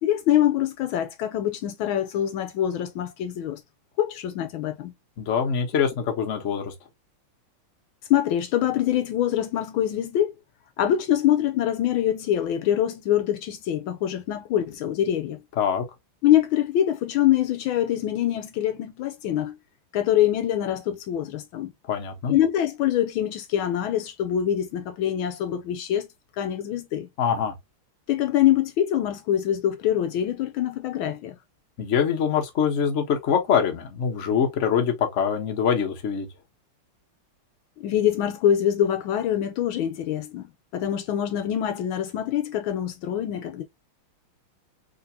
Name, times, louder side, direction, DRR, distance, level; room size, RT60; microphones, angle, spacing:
voice 1, 0.0-3.6 4.0-4.9 8.1-10.4 10.8-15.4 16.2-19.6 19.9-21.7 22.3-26.1 26.4-27.1 28.1-31.4 37.8-43.6, left 11 dB, 75° left, 1.4 m, -24 dB
voice 2, 5.2-6.7 15.6-15.8 21.9-22.4 27.2-27.5 31.8-36.3, left 7 dB, 45° left, 1.1 m, -24 dB
3.9 x 3.6 x 2.7 m
omnidirectional pair, 2.3 m